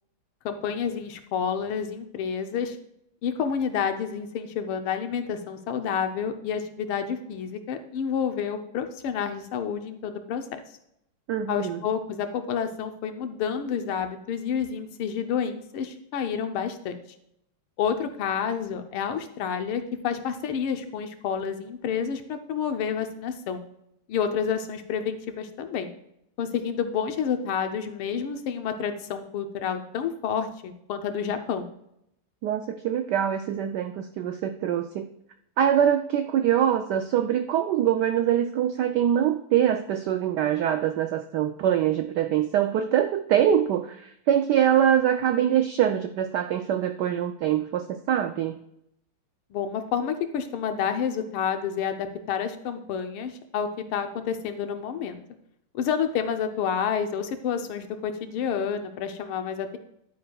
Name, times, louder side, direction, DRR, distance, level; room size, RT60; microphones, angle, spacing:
voice 1, 0.5-2.8 3.2-10.6 11.5-17.0 17.8-23.6 24.1-25.9 26.4-31.7 49.5-55.2 55.7-59.8, left 7 dB, 80° left, 7 dB, 1.7 m, -29 dB
voice 2, 11.3-11.8 32.4-35.1 35.6-48.6, right 10 dB, 85° right, 7 dB, 0.9 m, -24 dB
10.5 x 9.4 x 2.3 m, 0.76 s
omnidirectional pair, 2.4 m